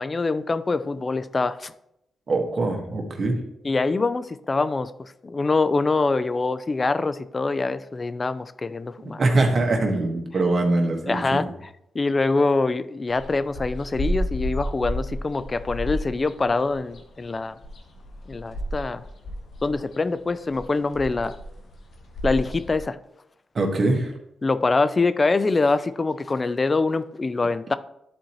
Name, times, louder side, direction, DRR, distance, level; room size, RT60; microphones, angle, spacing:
voice 1, 0.0-1.7 3.6-9.2 11.1-11.5 11.9-17.6 18.3-19.0 19.6-21.4 22.2-23.0 24.4-27.8, left 3 dB, 40° left, 14 dB, 0.4 m, -24 dB
voice 2, 2.3-3.4 9.2-11.4 23.5-24.1, right 2 dB, 50° right, 2 dB, 1.5 m, -22 dB
sound 1, 13.1-22.8, equal, 70° left, 1.0 m, -32 dB
11.5 x 4.3 x 3.1 m, 0.82 s
cardioid pair, 55°, 0 cm